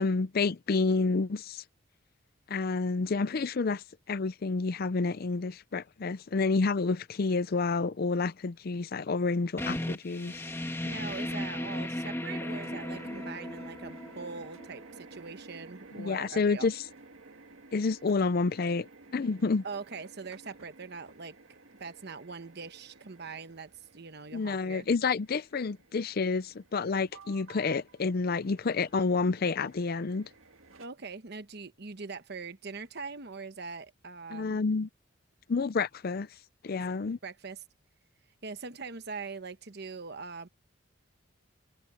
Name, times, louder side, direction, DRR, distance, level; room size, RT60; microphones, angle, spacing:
voice 1, 0.0-1.6 2.5-10.4 16.0-16.8 17.7-18.9 19.1-19.6 24.3-30.3 34.3-34.9 35.5-36.3 36.6-37.2, left 4 dB, 45° left, 0.5 m, -29 dB
sound 1, 9.6-15.0, left 1 dB, 10° left, 1.4 m, -36 dB
voice 2, 10.8-16.7 19.6-21.3 21.8-24.9 30.8-34.6 36.7-36.8 37.2-37.6 38.4-40.5, right 4 dB, 55° right, 1.1 m, -42 dB
sound 2, 12.5-30.9, right 3 dB, 80° right, 1.7 m, -53 dB
head